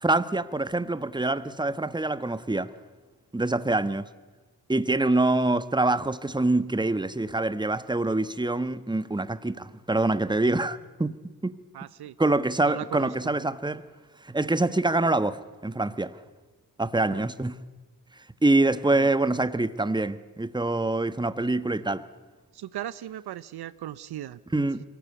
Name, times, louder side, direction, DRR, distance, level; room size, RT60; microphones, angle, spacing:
voice 1, 0.0-2.7 3.3-4.1 4.7-11.1 11.4-11.5 12.2-13.8 14.2-16.2 16.8-17.6 18.4-22.0 24.5-24.8, right 2 dB, 10° right, 1.3 m, -25 dB
voice 2, 11.7-12.1 12.6-13.3 17.0-17.3 18.8-19.1 22.5-24.4, right 12 dB, 65° right, 0.8 m, -38 dB
23.5 x 18.0 x 8.2 m
supercardioid pair, 45°, 41 cm